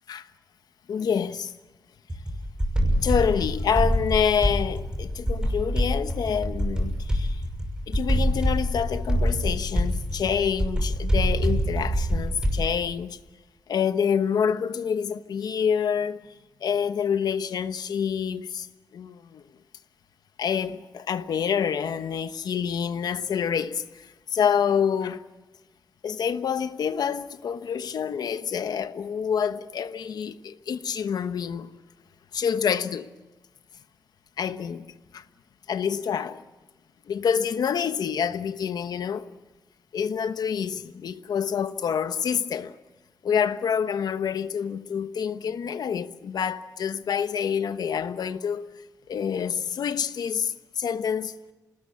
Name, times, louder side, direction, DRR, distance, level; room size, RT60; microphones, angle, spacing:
voice 1, 0.9-1.5 3.0-7.4 7.9-13.2 13.7-16.2 16.6-18.7 18.9-19.4 20.4-25.2 26.0-31.7 32.3-33.1 34.4-34.9 35.1-35.2 35.7-36.4 37.1-39.3 39.9-42.7 43.2-48.7 49.1-51.3, left 7 dB, 80° left, 1.1 m, -27 dB
sound 1, 2.1-12.8, equal, 10° right, 6.2 m, -26 dB
28.0 x 19.5 x 8.5 m
wide cardioid pair, 160°, 7 cm